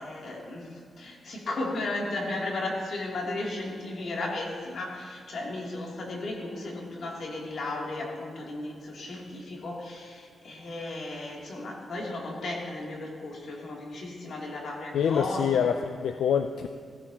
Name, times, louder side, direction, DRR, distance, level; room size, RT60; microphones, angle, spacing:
voice 1, 0.0-15.6, left 2 dB, 65° left, -2 dB, 3.0 m, -35 dB
voice 2, 14.9-16.7, left 7 dB, 90° left, 8 dB, 0.5 m, -26 dB
16.5 x 16.0 x 3.0 m, 2.2 s
cardioid pair, 105°, 0 cm